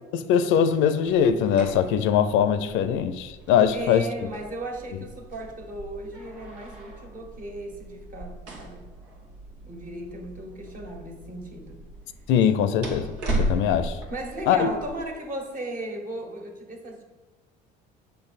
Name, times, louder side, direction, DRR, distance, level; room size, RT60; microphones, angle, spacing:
voice 1, 0.1-4.0 12.3-13.1 13.4-14.0 14.5-14.7, left 8 dB, 70° left, 0.6 m, -21 dB
sound 1, 1.1-15.0, right 1 dB, 85° right, 1.6 m, -37 dB
voice 2, 3.7-8.9 9.7-11.8 12.6-12.7 14.1-17.0, right 1 dB, 40° right, 1.7 m, -36 dB
6.8 x 5.4 x 4.1 m
supercardioid pair, 75°, 21 cm